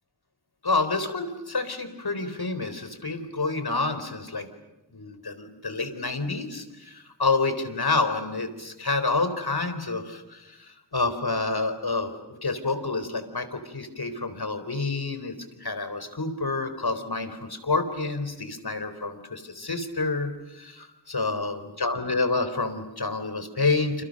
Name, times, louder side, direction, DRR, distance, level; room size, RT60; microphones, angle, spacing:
voice 1, 0.6-4.5 4.9-15.4 15.6-24.0, left 3 dB, 60° left, 9 dB, 4.1 m, -28 dB
29.5 x 29.0 x 6.5 m, 1.0 s
wide cardioid pair, 60°, 42 cm